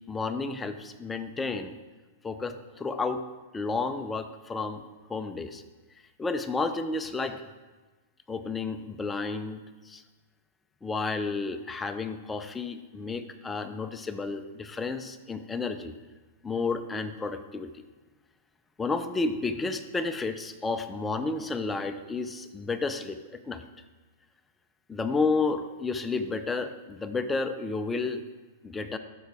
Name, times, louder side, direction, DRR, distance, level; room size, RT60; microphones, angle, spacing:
voice 1, 0.1-1.8 2.2-3.2 3.5-5.6 6.2-7.4 8.3-10.0 10.8-16.0 16.4-17.8 18.8-23.6 24.9-28.2 28.6-29.0, left 3 dB, 10° left, 9 dB, 0.4 m, -31 dB
12.0 x 4.8 x 3.5 m, 1.2 s
supercardioid pair, 150°, 0 cm